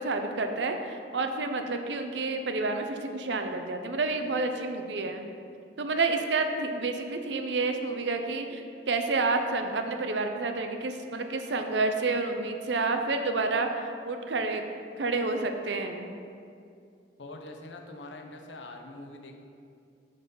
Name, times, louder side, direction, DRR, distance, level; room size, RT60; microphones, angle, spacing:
voice 1, 0.0-5.3 5.8-13.7 14.1-14.6 15.0-16.1, right 3 dB, 75° right, 6 dB, 0.7 m, -29 dB
voice 2, 17.2-19.3, left 2 dB, 85° left, 3 dB, 0.9 m, -44 dB
9.4 x 4.0 x 5.5 m, 2.4 s
head